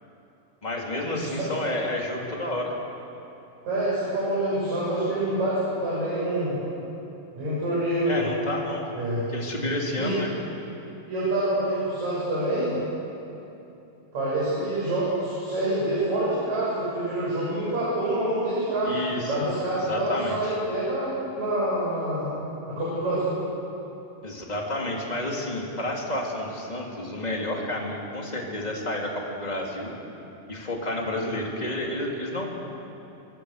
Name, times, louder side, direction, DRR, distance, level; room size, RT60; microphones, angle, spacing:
voice 1, 0.6-2.7 8.1-8.9 9.3-10.3 18.8-19.3 19.7-20.6 24.2-29.9 30.5-32.5, left 1 dB, 10° left, -1 dB, 2.5 m, -30 dB
voice 2, 3.7-6.6 7.3-8.3 9.0-9.2 10.0-10.1 11.1-12.8 14.1-22.3 22.7-23.4, right 1 dB, 45° right, -9 dB, 7.7 m, -26 dB
26.5 x 21.5 x 6.7 m, 2.9 s
omnidirectional pair, 4.5 m